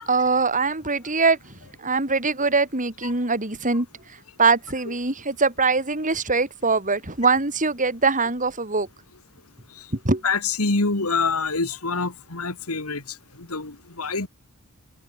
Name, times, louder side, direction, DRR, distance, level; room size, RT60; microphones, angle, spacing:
voice 1, 0.1-1.4 1.8-3.9 4.4-8.9 10.0-10.2, right 4 dB, 35° right, 4.5 m, -22 dB
voice 2, 10.2-13.0 13.4-14.3, left 4 dB, 70° left, 2.5 m, -26 dB
head